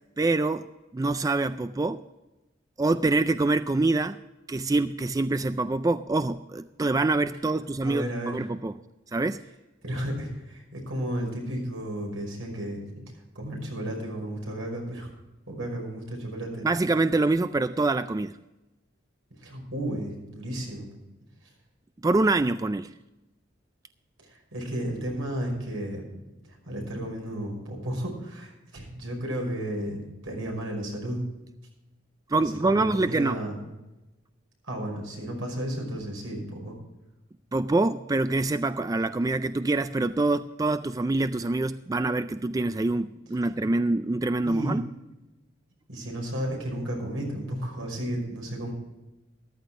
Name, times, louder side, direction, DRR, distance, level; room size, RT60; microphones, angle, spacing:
voice 1, 0.2-0.6 0.9-2.0 2.8-4.2 4.5-8.7 9.1-9.4 16.6-18.4 22.0-22.9 32.3-33.4 37.5-44.9, right 2 dB, 15° right, 12 dB, 0.3 m, -25 dB
voice 2, 7.8-8.4 9.8-12.8 13.4-15.1 15.5-16.7 19.4-20.9 24.3-26.0 26.7-30.0 30.2-31.2 32.4-33.5 34.7-36.7 43.4-43.5 44.4-44.8 45.9-48.7, right 1 dB, 85° right, 0 dB, 5.6 m, -33 dB
14.0 x 13.0 x 3.7 m, 1.0 s
head